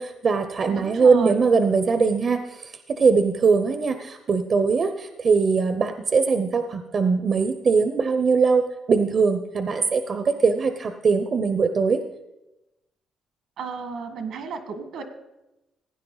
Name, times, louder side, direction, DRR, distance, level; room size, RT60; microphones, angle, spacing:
voice 1, 0.0-8.6 8.9-12.0, right 5 dB, 50° right, 9 dB, 0.7 m, -21 dB
voice 2, 0.7-1.4 13.6-15.0, right 5 dB, 75° right, 8 dB, 1.6 m, -33 dB
16.5 x 9.5 x 4.0 m, 0.97 s
cardioid pair, 90°, 0 cm